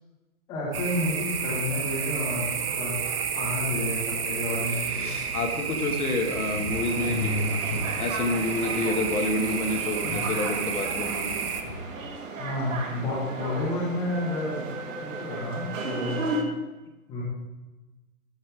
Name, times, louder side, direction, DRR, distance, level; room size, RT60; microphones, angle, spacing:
voice 1, 0.5-2.9 3.3-5.1 12.4-16.2 17.1-17.2, left 2 dB, 10° left, -6 dB, 1.4 m, -30 dB
sound 1, 0.7-11.6, right 6 dB, 80° right, 1.1 m, -31 dB
sound 2, 2.6-3.2 4.0-4.1 4.5-8.7 9.0-9.6 9.9-12.0, left 2 dB, 35° left, 1.4 m, -35 dB
voice 2, 5.3-7.6 8.0-11.4, left 2 dB, 75° left, 3 dB, 1.8 m, -28 dB
sound 3, 6.7-16.4, right 3 dB, 60° right, 1.5 m, -35 dB
13.0 x 5.5 x 3.4 m, 1.1 s
hypercardioid pair, 170°, 45 cm